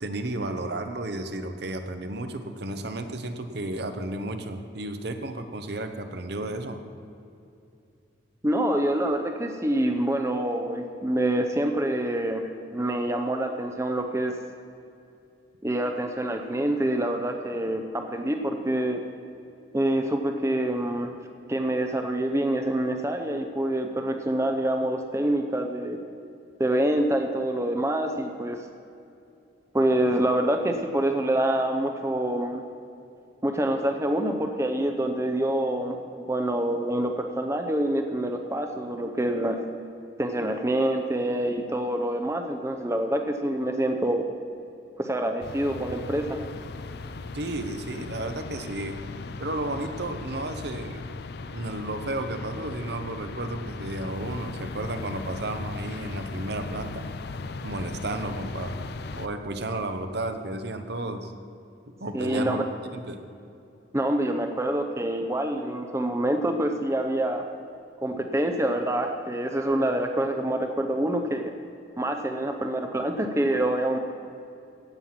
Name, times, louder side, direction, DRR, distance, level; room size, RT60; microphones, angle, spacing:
voice 1, 0.0-6.8 47.3-49.0 49.4-51.0 51.5-57.0 57.6-61.3 62.0-62.7 62.9-63.2, right 2 dB, 55° right, 7 dB, 0.9 m, -33 dB
voice 2, 8.4-14.4 15.6-19.0 19.7-21.1 21.5-26.0 26.6-28.6 29.7-32.6 33.4-39.6 40.2-44.3 45.0-46.2 62.1-62.6 63.9-67.4 68.0-71.5 72.0-74.0, right 1 dB, 15° right, 5 dB, 0.6 m, -26 dB
sound 1, 45.4-59.3, left 3 dB, 55° left, 0.5 m, -37 dB
16.5 x 7.6 x 5.8 m, 2.6 s
head